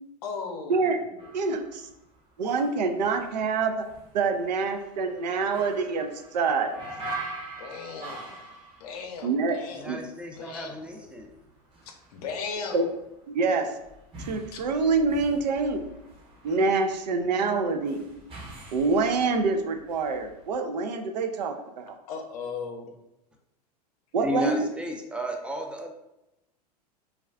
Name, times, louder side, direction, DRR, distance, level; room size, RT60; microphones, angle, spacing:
voice 1, 0.2-1.3 7.6-8.5 8.8-9.9 10.3-10.8 11.9-12.9 14.5-14.6 22.1-22.8, left 5 dB, 65° left, 4 dB, 0.6 m, -37 dB
sound 1, 1.2-10.1 10.4-20.6, right 2 dB, 25° right, 0.7 m, -44 dB
voice 2, 1.3-1.9 2.4-3.8 4.1-6.1 6.3-6.7 9.2-9.6 9.9-10.0 12.7-12.9 13.3-13.7 14.2-15.9 16.4-18.0 18.7-21.9 24.1-24.7, right 4 dB, 80° right, 6 dB, 0.4 m, -26 dB
voice 3, 9.7-11.3 24.2-25.9, left 1 dB, 5° right, 2 dB, 0.4 m, -34 dB
2.4 x 2.3 x 3.3 m, 0.91 s
hypercardioid pair, 100°, 21 cm